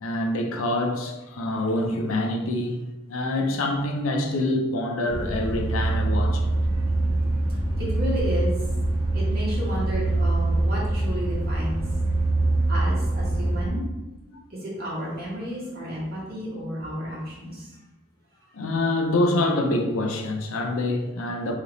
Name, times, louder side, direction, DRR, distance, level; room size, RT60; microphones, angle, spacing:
voice 1, 0.0-2.8 3.1-6.5 14.3-14.4 18.5-21.5, left 1 dB, 75° left, 0.5 m, -26 dB
sound 1, 5.1-13.7, right 2 dB, 25° right, 1.5 m, -24 dB
voice 2, 7.8-8.6 9.1-11.8 12.7-13.8 14.6-17.7, equal, 45° right, 1.4 m, -32 dB
3.3 x 2.8 x 3.9 m
head